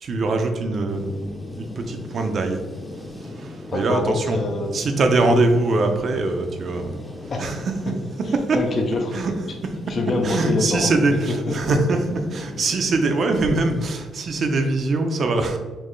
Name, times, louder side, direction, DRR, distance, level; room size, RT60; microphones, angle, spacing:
voice 1, 0.0-2.6 3.2-4.4 4.7-6.9 7.4-7.6 8.3-8.6 9.1-9.3 9.6-9.7 10.2-15.6, right 2 dB, 50° right, 5 dB, 0.6 m, -22 dB
sound 1, 0.9-13.9, left 1 dB, 10° left, 0.7 m, -38 dB
voice 2, 3.7-4.7 7.3-7.5 8.5-9.2 9.9-11.2 11.5-11.6, left 3 dB, 50° left, 1 dB, 0.6 m, -25 dB
4.4 x 2.8 x 3.2 m, 1.2 s
cardioid pair, 90°, 0 cm